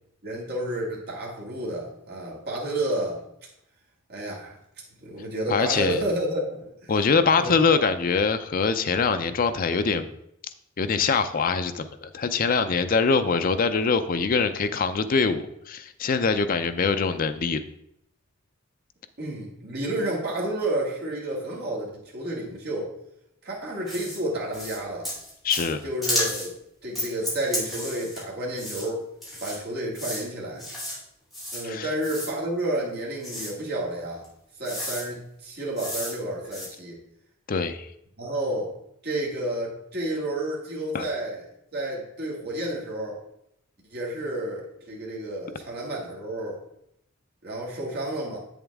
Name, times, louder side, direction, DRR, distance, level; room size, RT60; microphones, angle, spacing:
voice 1, 0.2-3.2 4.1-4.6 5.0-7.0 7.3-7.6 19.2-22.9 23.4-25.1 25.8-26.5 26.8-29.0 29.4-30.7 31.5-34.3 34.6-37.0 38.2-38.7 39.0-41.4 41.7-43.2 43.9-46.6 47.4-48.4, right 1 dB, 50° right, -4 dB, 2.2 m, -30 dB
voice 2, 5.5-6.0 6.9-10.2 10.8-17.6 25.4-25.8 31.6-31.9 37.5-37.9 40.9-41.0, left 5 dB, 40° left, 10 dB, 0.5 m, -23 dB
sound 1, 23.9-24.2 24.5-24.8 25.0-25.7 26.0-26.5 26.9-28.2 28.6-28.8 29.2-29.6 29.9-30.2 30.6-31.0 31.3-31.6 32.0-32.3 33.2-33.5 34.2-34.3 34.6-35.0 35.8-36.1 36.4-36.7, left 1 dB, ahead, 3.4 m, -32 dB
7.9 x 7.2 x 3.5 m, 0.76 s
head